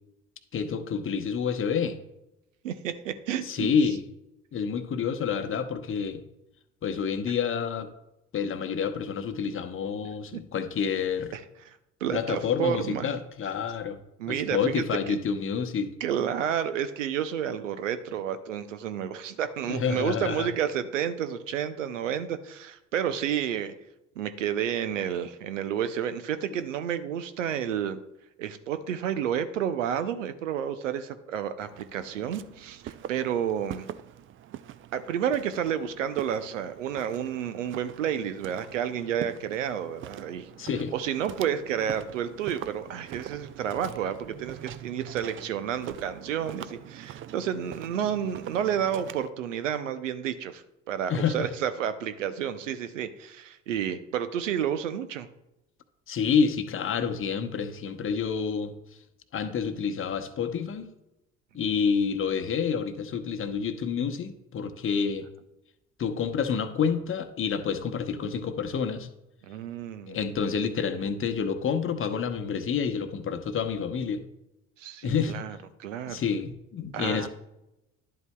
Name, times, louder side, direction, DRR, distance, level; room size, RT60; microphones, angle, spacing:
voice 1, 0.5-2.0 3.4-4.0 4.5-6.2 6.8-7.9 8.3-11.3 12.1-14.0 14.3-15.9 19.7-20.5 40.6-40.9 51.1-51.5 56.1-58.7 59.3-60.9 61.5-65.3 66.0-69.1 70.1-74.2 75.0-75.4 76.1-77.3, left 6 dB, 35° left, 7 dB, 0.8 m, -28 dB
voice 2, 2.6-3.7 10.3-10.4 11.3-11.4 11.7-11.8 12.0-13.1 14.2-15.2 16.0-23.7 24.2-28.0 28.4-33.9 34.9-40.5 40.9-55.3 69.4-70.3 74.8-76.3 76.9-77.3, right 9 dB, 85° right, 12 dB, 0.6 m, -30 dB
Walk footsteps, 31.6-49.3, right 11 dB, 35° right, 0.4 m, -44 dB
11.0 x 8.0 x 2.2 m, 0.91 s
hypercardioid pair, 60°, 37 cm